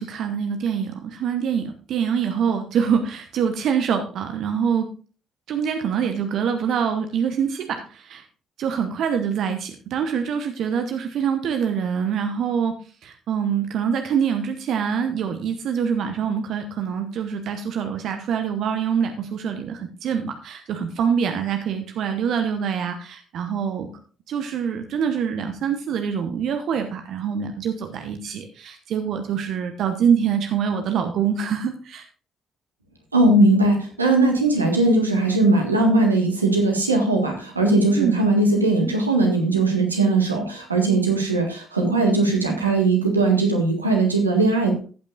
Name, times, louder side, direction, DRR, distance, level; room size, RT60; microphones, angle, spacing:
voice 1, 0.0-4.9 5.5-8.2 8.6-23.9 24.3-32.1 38.0-38.3, right 7 dB, 55° right, 6 dB, 1.0 m, -25 dB
voice 2, 33.1-44.8, right 2 dB, 85° right, 2 dB, 1.6 m, -19 dB
14.5 x 8.6 x 2.5 m, 0.37 s
figure-of-eight pair, 45°, 0 cm